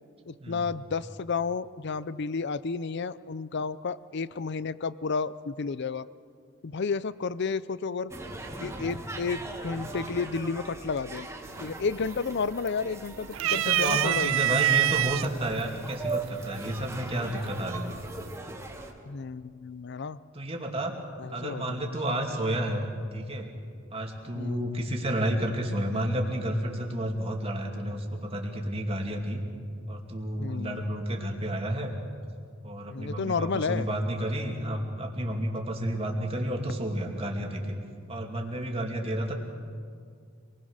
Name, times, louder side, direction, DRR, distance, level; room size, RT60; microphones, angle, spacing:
voice 1, 0.3-6.1 6.6-8.1 8.6-11.3 11.6-14.3 19.0-20.2 21.2-21.9 24.3-24.7 30.4-30.9 32.9-33.9, left 4 dB, 60° left, 17 dB, 0.6 m, -32 dB
sound 1, 8.1-18.9, right 2 dB, 15° right, 2.1 m, -40 dB
sound 2, 11.5-11.9 12.2-12.9 13.3-15.3 16.1-16.2 17.5-17.9, right 12 dB, 80° right, 0.5 m, -25 dB
voice 2, 13.4-18.0 20.3-20.9 21.3-23.5 23.9-29.4 29.9-31.9 32.6-37.8 38.1-39.3, right 1 dB, 30° right, 1 dB, 2.7 m, -31 dB
26.5 x 20.5 x 6.5 m, 2.2 s
head